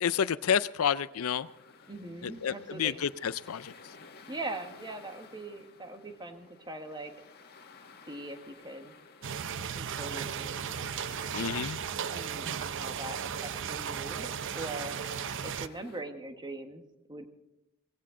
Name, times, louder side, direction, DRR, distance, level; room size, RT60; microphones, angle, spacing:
voice 1, 0.0-1.5 2.2-3.7 11.3-11.8, left 8 dB, 70° left, 17 dB, 0.5 m, -30 dB
sound 1, 0.7-16.0, left 4 dB, 45° left, 1.9 m, -55 dB
voice 2, 1.9-3.0 4.3-7.1 8.1-8.9 9.7-10.8 12.1-15.0 15.4-16.8 17.1-17.3, right 2 dB, 20° right, 6 dB, 1.3 m, -41 dB
sound 2, 9.2-15.7, right 7 dB, 60° right, 0.6 m, -36 dB
18.0 x 16.0 x 3.8 m, 0.92 s
head